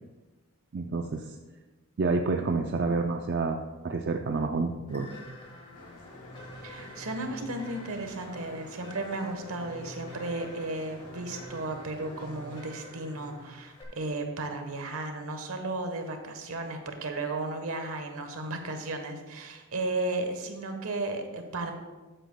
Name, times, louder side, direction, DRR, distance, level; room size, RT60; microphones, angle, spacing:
voice 1, 0.7-1.3 2.0-3.6 3.8-5.1, right 3 dB, 50° right, 4 dB, 0.4 m, -28 dB
sound 1, 4.9-13.8, equal, 25° left, 1.5 m, -47 dB
sound 2, 5.7-12.7, left 1 dB, 85° left, 1.3 m, -49 dB
voice 2, 6.6-21.7, right 2 dB, 70° right, 5 dB, 1.1 m, -34 dB
13.0 x 7.9 x 2.2 m, 1.2 s
head